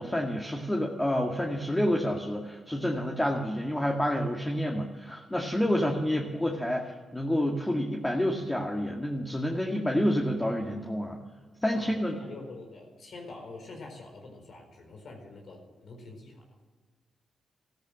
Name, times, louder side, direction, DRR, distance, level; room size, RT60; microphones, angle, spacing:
voice 1, 0.0-11.2 11.6-12.2, equal, 15° left, 0 dB, 2.0 m, -28 dB
voice 2, 11.7-16.4, left 3 dB, 65° left, 2 dB, 4.5 m, -46 dB
14.5 x 13.0 x 7.5 m, 1.4 s
cardioid pair, 60°, 0 cm